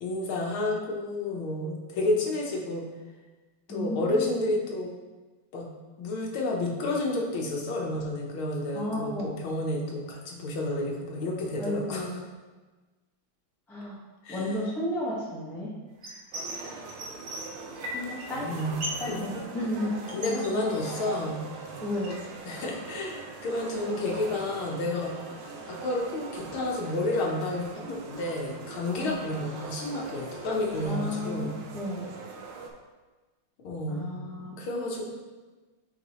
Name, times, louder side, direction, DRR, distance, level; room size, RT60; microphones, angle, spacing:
voice 1, 0.0-2.8 3.7-4.9 5.5-5.7 6.0-12.1 14.3-14.6 18.3-19.2 20.1-21.4 22.5-25.1 25.7-31.6 33.6-34.1 34.6-35.1, left 2 dB, 85° left, -1 dB, 1.9 m, -30 dB
voice 2, 3.7-4.4 8.7-9.3 11.6-12.2 13.7-14.0 14.3-15.7 17.9-18.5 19.0-19.9 20.2-20.6 21.8-22.2 29.0-29.1 30.8-32.1 33.9-34.6, left 1 dB, ahead, -7 dB, 1.0 m, -33 dB
sound 1, 16.0-16.6 16.9-18.3 18.5-19.1 19.4-21.2 21.5-22.3, equal, 40° right, 0.9 m, -38 dB
sound 2, 16.3-32.7, right 4 dB, 90° right, 1.6 m, -42 dB
7.1 x 4.5 x 3.0 m, 1.2 s
omnidirectional pair, 2.2 m